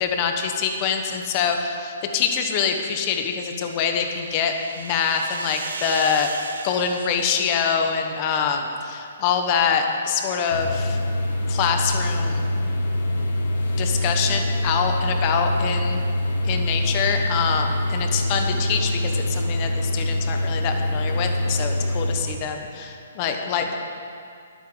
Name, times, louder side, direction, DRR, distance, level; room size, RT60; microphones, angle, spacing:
voice 1, 0.0-11.0 11.5-12.5 13.8-16.0 16.4-23.7, left 6 dB, 30° left, 4 dB, 1.1 m, -25 dB
sound 1, 3.2-8.7, right 5 dB, 75° right, 0.6 m, -38 dB
sound 2, 10.5-22.2, left 1 dB, 70° left, 2.2 m, -24 dB
20.5 x 8.5 x 3.9 m, 2.4 s
hypercardioid pair, 160°, 0 cm